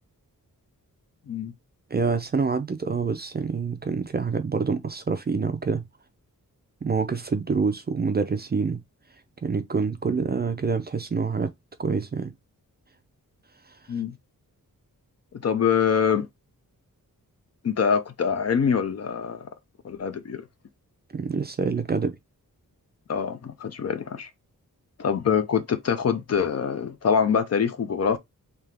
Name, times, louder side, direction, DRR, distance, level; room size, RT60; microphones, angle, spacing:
voice 1, 1.9-5.9 6.8-8.8 9.4-11.5 11.8-12.3 21.1-22.2, right 5 dB, 30° right, 0.4 m, -26 dB
voice 2, 15.4-16.3 17.6-19.5 19.8-20.4 23.1-24.3 25.0-28.2, left 7 dB, 50° left, 0.5 m, -24 dB
3.5 x 2.8 x 3.3 m
wide cardioid pair, 160°, 34 cm